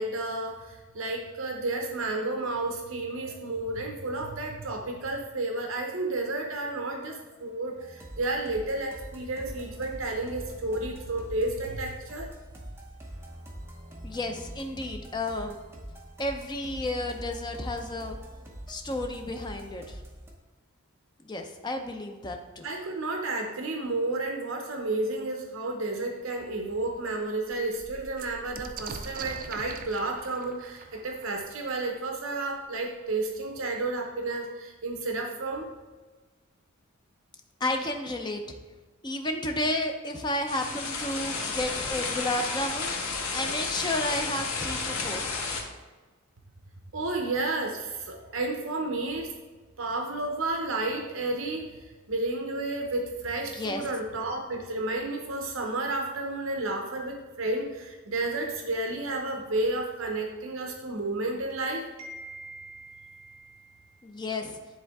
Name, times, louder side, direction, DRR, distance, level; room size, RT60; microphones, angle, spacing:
voice 1, 0.0-12.3 22.6-35.7 46.9-49.3 49.8-51.7 52.1-63.8, right 2 dB, 65° right, 2 dB, 0.8 m, -32 dB
sound 1, 7.8-20.3, right 1 dB, 10° right, 0.8 m, -44 dB
voice 2, 14.0-15.6 16.2-18.2 18.7-20.0 21.3-22.7 37.6-38.6 39.0-42.9 43.3-45.3 53.5-53.9 64.0-64.6, left 1 dB, 20° left, 4 dB, 0.6 m, -32 dB
sound 2, 26.1-26.2 26.7-26.8 27.0-32.6 33.6-33.7 33.9-34.5, right 4 dB, 40° right, 0.4 m, -44 dB
sound 3, 40.5-45.6, left 4 dB, 75° left, 0.9 m, -32 dB
9.7 x 3.7 x 3.5 m, 1.3 s
head